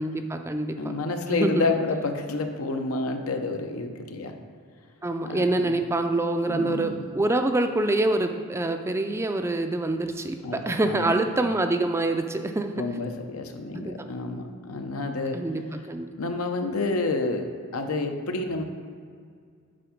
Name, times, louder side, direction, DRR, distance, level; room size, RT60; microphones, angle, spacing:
voice 1, 0.0-0.8 1.3-1.7 5.0-12.8 13.7-13.9 15.3-16.1, right 2 dB, 10° right, 6 dB, 0.3 m, -26 dB
voice 2, 0.8-4.3 5.2-5.8 6.5-7.0 10.4-11.2 12.7-15.4 15.7-15.8 16.2-18.6, left 3 dB, 90° left, 5 dB, 0.8 m, -29 dB
7.6 x 4.6 x 5.0 m, 2.1 s
head